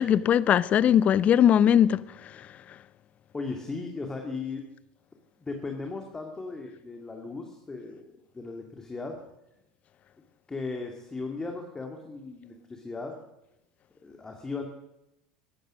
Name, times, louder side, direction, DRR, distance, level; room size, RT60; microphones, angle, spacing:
voice 1, 0.0-2.5, left 9 dB, 40° left, 0.6 m, -21 dB
voice 2, 3.3-4.6 5.4-8.0 8.3-9.2 10.5-13.2 14.0-14.7, left 3 dB, 15° left, 2.2 m, -36 dB
14.5 x 11.5 x 6.2 m
hypercardioid pair, 80°, 4 cm